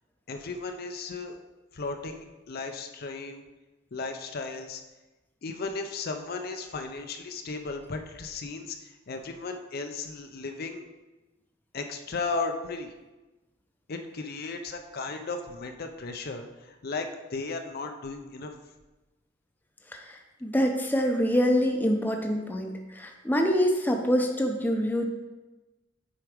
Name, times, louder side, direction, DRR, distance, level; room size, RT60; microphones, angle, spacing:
voice 1, 0.3-1.4 1.7-3.4 3.9-4.8 5.4-10.8 11.7-12.9 13.9-18.5, left 3 dB, 50° left, 5 dB, 0.6 m, -35 dB
voice 2, 19.9-25.1, equal, 10° left, 2 dB, 0.6 m, -25 dB
7.8 x 4.7 x 5.0 m, 1.1 s
head